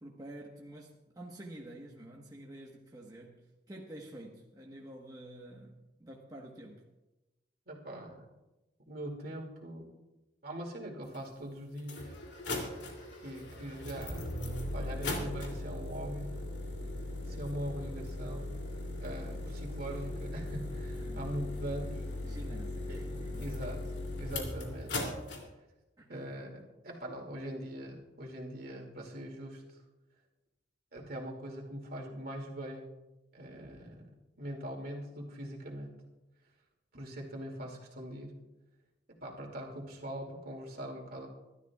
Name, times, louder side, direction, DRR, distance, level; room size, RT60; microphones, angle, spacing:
voice 1, 0.0-6.8 21.0-21.3 22.2-23.5 25.3-25.4 26.0-26.4, right 1 dB, 20° right, -2 dB, 1.3 m, -49 dB
voice 2, 7.7-8.3 8.9-9.9 10.4-12.1 13.2-14.3 14.7-16.3 17.3-18.5 19.0-22.1 22.9-23.9 24.2-25.0 26.1-29.8 30.9-32.9 33.3-34.1 34.4-35.9 36.9-38.3 39.2-41.3, equal, 55° right, 1 dB, 2.5 m, -42 dB
sound 1, 11.1-11.2 11.8-25.4, left 2 dB, 75° left, 2.8 m, -38 dB
26.0 x 12.5 x 2.4 m, 1.0 s
head